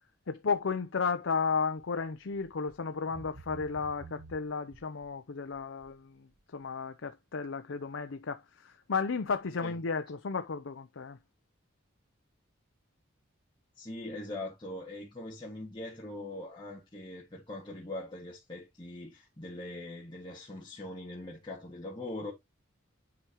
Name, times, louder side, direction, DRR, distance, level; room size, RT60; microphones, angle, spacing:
voice 1, 0.3-11.2, left 5 dB, 65° left, 0.6 m, -33 dB
sound 1, 1.8-2.0 2.3-2.8 3.1-5.1 5.5-5.9 6.3-6.4, right 3 dB, 65° right, 1.1 m, -50 dB
voice 2, 13.8-22.3, left 2 dB, 20° left, 1.8 m, -42 dB
9.5 x 4.9 x 2.9 m
head